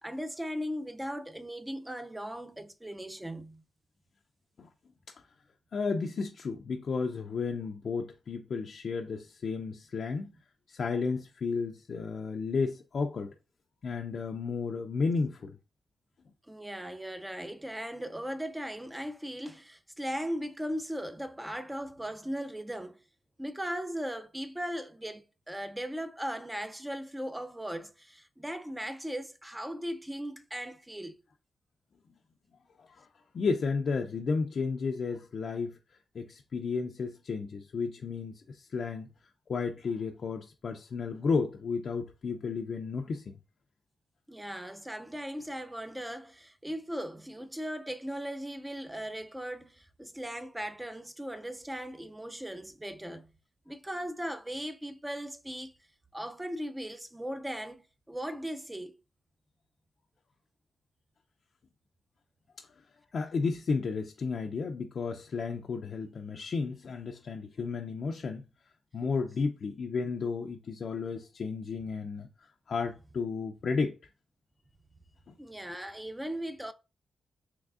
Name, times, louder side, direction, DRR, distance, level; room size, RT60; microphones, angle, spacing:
voice 1, 0.0-3.6 16.5-23.0 23.4-31.2 44.3-53.3 53.7-55.7 56.1-59.0 75.4-76.7, equal, 10° right, 0.4 m, -38 dB
voice 2, 5.7-10.3 10.7-13.3 13.8-15.6 32.8-33.1 33.3-39.1 39.5-43.4 62.6-62.8 63.1-68.4 68.9-74.0 75.3-75.4, left 4 dB, 65° left, 0.4 m, -33 dB
3.5 x 3.1 x 2.4 m
cardioid pair, 70°, 0 cm